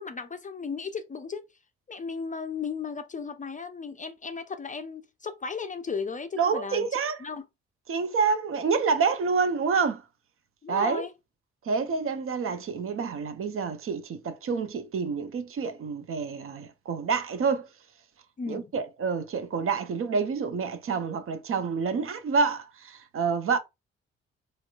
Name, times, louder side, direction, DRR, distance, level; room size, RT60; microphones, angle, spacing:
voice 1, 0.0-1.4 1.9-6.9 7.2-7.5 10.6-11.1 18.4-18.7, left 5 dB, 25° left, 0.5 m, -35 dB
voice 2, 6.4-7.2 7.9-10.0 10.7-11.0 11.7-17.7 18.5-23.6, right 5 dB, 45° right, 0.6 m, -28 dB
3.1 x 2.9 x 2.3 m
hypercardioid pair, 45°, 31 cm